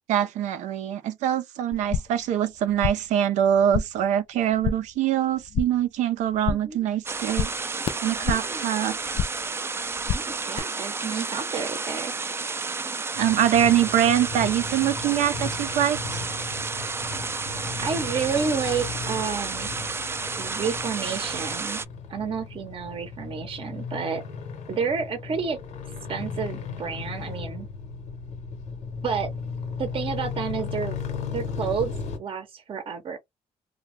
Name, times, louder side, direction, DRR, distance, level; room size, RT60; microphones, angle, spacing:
voice 1, 0.1-7.5 8.0-9.0 13.2-16.2, right 10 dB, 80° right, 0.5 m, -24 dB
sound 1, 1.7-2.3 2.5-3.2 3.4-4.1 4.4-5.0 5.3-5.9 6.2-6.8 7.1-8.6 8.9-9.5 9.8-10.6, left 7 dB, 50° left, 0.4 m, -30 dB
voice 2, 6.5-6.8 8.2-8.7 10.1-12.2 17.8-19.7 20.4-21.8 22.1-24.2 24.7-25.6 26.1-27.7 29.0-29.3 29.8-31.0 31.3-31.9 32.2-33.2, right 6 dB, 45° right, 0.7 m, -30 dB
sound 2, 7.1-21.9, right 4 dB, 20° right, 0.3 m, -31 dB
sound 3, 13.1-32.2, left 5 dB, 85° left, 1.0 m, -36 dB
2.6 x 2.2 x 3.1 m
cardioid pair, 85°, 12 cm